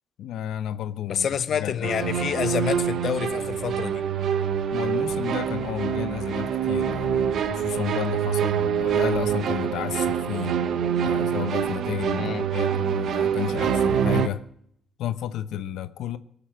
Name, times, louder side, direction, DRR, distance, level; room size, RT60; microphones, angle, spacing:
voice 1, 0.2-2.1 4.7-10.6 11.0-14.4 15.0-16.2, left 11 dB, 80° left, 0.8 m, -32 dB
voice 2, 1.1-4.0 12.1-12.5, left 8 dB, 60° left, 1.0 m, -28 dB
sound 1, 1.8-14.3, right 8 dB, 70° right, 1.1 m, -25 dB
19.5 x 7.2 x 7.5 m
cardioid pair, 90°, 0 cm